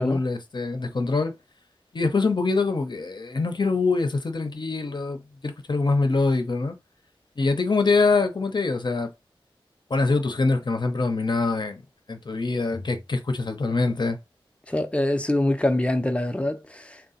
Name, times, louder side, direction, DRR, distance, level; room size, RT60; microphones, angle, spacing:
voice 1, 0.0-1.3 1.9-6.8 7.4-9.1 9.9-11.8 12.1-14.2, left 3 dB, 55° left, 0.8 m, -24 dB
voice 2, 14.7-17.0, left 1 dB, 15° left, 0.7 m, -24 dB
3.7 x 2.2 x 4.2 m
wide cardioid pair, 70°, 9 cm